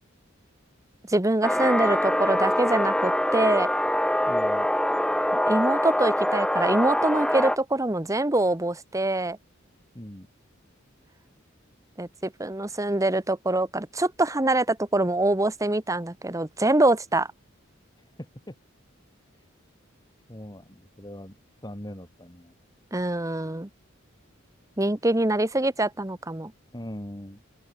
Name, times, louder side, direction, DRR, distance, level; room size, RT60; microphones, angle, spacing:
voice 1, 1.1-3.7 5.5-9.4 12.0-17.3 22.9-23.7 24.8-26.5, right 2 dB, 15° right, 1.2 m, -24 dB
sound 1, 1.4-7.6, left 1 dB, 5° left, 3.3 m, -24 dB
voice 2, 4.3-4.7 9.9-10.3 18.2-18.6 20.3-21.3 21.6-22.5 26.7-27.4, equal, 20° left, 5.4 m, -40 dB
open air
head